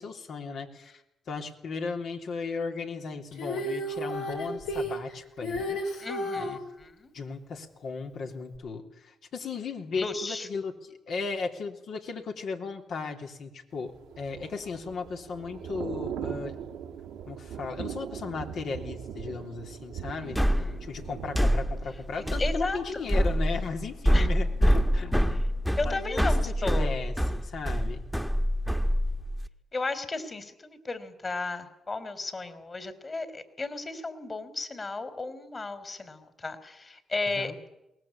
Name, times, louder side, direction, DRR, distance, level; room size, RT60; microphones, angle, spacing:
voice 1, 0.0-5.8 6.4-6.6 7.1-16.6 17.3-20.4 20.8-25.2 25.8-28.0 37.3-37.6, left 4 dB, 70° left, 3 dB, 3.3 m, -36 dB
Female singing, 3.3-6.6 8.5-8.6, equal, 85° left, 5.5 m, -32 dB
voice 2, 6.0-7.1 9.9-10.5 20.2-20.9 22.2-22.8 24.1-24.3 25.8-26.9 29.7-37.5, left 3 dB, 40° left, 10 dB, 3.7 m, -34 dB
Thunder / Rain, 13.9-23.8 24.2-24.4, right 8 dB, 90° right, 1.7 m, -40 dB
sound 1, 20.4-29.5, equal, 5° left, 1.5 m, -26 dB
22.5 x 19.0 x 8.7 m, 0.88 s
supercardioid pair, 55°, 0 cm